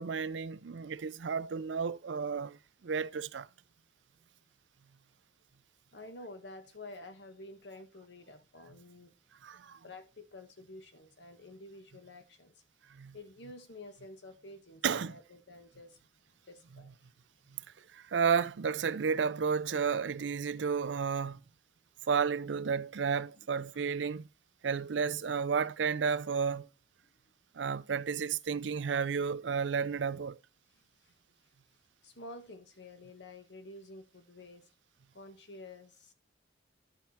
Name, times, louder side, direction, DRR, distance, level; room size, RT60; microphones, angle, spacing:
voice 1, 0.0-2.6 2.8-3.5 9.4-9.8 12.9-13.1 14.8-15.2 17.9-21.4 22.1-24.3 24.6-26.7 27.6-30.4, right 6 dB, 85° right, 0.5 m, -32 dB
voice 2, 5.9-9.1 9.8-12.6 13.1-16.0 16.4-17.2 23.3-23.5 23.7-23.8 27.0-27.1 30.7-31.1 32.0-34.7 35.1-36.1, left 2 dB, 75° left, 1.4 m, -50 dB
11.0 x 5.9 x 4.3 m
head